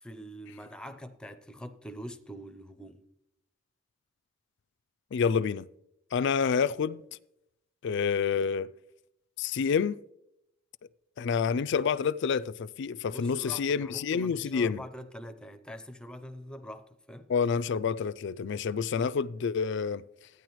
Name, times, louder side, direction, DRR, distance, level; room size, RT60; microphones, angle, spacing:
voice 1, 0.0-3.0 13.1-17.3, equal, 5° left, 0.6 m, -44 dB
voice 2, 5.1-5.7 6.1-7.0 7.8-8.7 9.4-10.0 11.2-14.8 17.3-20.0, left 6 dB, 60° left, 0.4 m, -28 dB
13.5 x 9.6 x 3.1 m
head